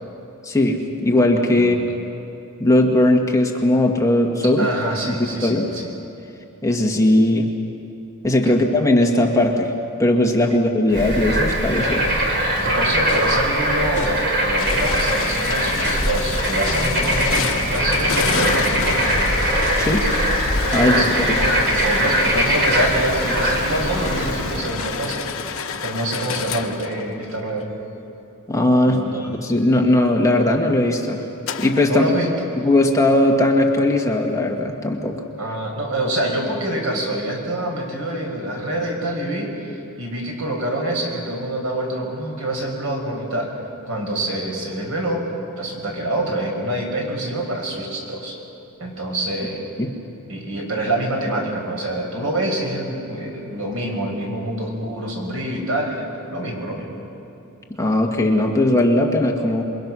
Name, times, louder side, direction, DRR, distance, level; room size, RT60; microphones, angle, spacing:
voice 1, 0.4-1.8 2.6-4.7 5.4-5.6 6.6-7.5 8.2-9.7 10.0-12.1 19.8-20.0 20.7-21.0 21.3-21.4 28.5-29.0 29.4-31.2 31.6-32.0 32.6-35.1 49.8-49.9 57.8-59.6, left 1 dB, 15° left, 0 dB, 1.8 m, -18 dB
voice 2, 4.6-5.9 8.5-8.6 12.6-19.0 20.7-25.3 25.8-27.7 28.8-29.3 31.8-32.5 35.4-43.5 43.9-45.2 45.6-48.4 48.8-49.6 50.3-56.9, right 1 dB, 70° right, 0 dB, 5.8 m, -26 dB
Bird / Frog, 10.9-24.7, right 1 dB, 55° right, 3.7 m, -21 dB
sound 1, 12.8-13.4 13.9-14.3 14.8-15.3 15.8-16.2 16.6-20.4 20.7-21.0 21.7-22.1 22.7-23.1 23.9-24.3 24.7-25.1 25.5-25.8 26.2-26.4, left 2 dB, 35° left, 4.2 m, -34 dB
sound 2, 14.6-27.6 31.5-31.9, left 6 dB, 65° left, 1.1 m, -29 dB
27.5 x 23.0 x 6.3 m, 2.9 s
head